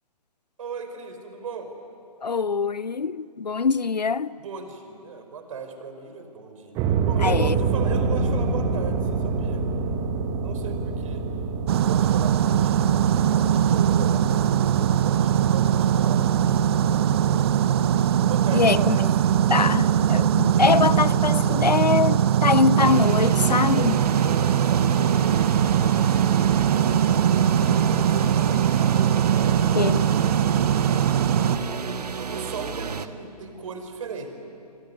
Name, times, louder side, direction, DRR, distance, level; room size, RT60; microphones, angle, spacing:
voice 1, 0.6-1.7 4.3-9.7 10.4-11.3 11.7-17.8 18.3-19.1 20.3-21.0 24.2-25.7 26.3-28.7 29.4-30.0 32.2-34.3, right 5 dB, 55° right, 4.4 m, -38 dB
voice 2, 2.2-4.3 7.2-7.5 18.5-19.0 19.5-24.0 29.7-30.0, left 5 dB, 85° left, 0.7 m, -23 dB
sound 1, 6.8-22.0, right 4 dB, 20° right, 1.7 m, -29 dB
sound 2, 11.7-31.6, right 9 dB, 40° right, 0.9 m, -21 dB
sound 3, 22.8-33.1, right 5 dB, 70° right, 1.3 m, -31 dB
27.0 x 21.5 x 9.7 m
figure-of-eight pair, 135°, 21 cm